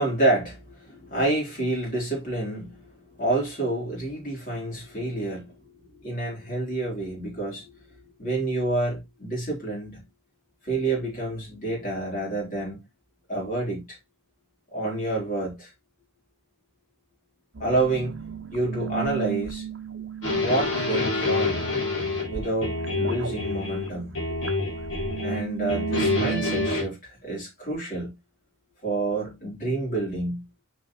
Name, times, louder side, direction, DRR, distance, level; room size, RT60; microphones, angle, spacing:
voice 1, 0.0-10.0 10.6-12.8 13.3-14.0 14.7-15.7 17.6-18.2 18.5-19.7 20.3-21.7 22.3-24.1 25.2-28.1 28.8-30.4, right 2 dB, 40° left, 4.1 m, -28 dB
sound 1, 17.6-26.7, right 8 dB, 55° right, 0.8 m, -35 dB
sound 2, 20.2-23.9 24.1-25.4 25.7-26.8, left 3 dB, 60° left, 3.5 m, -27 dB
6.6 x 5.3 x 3.1 m
head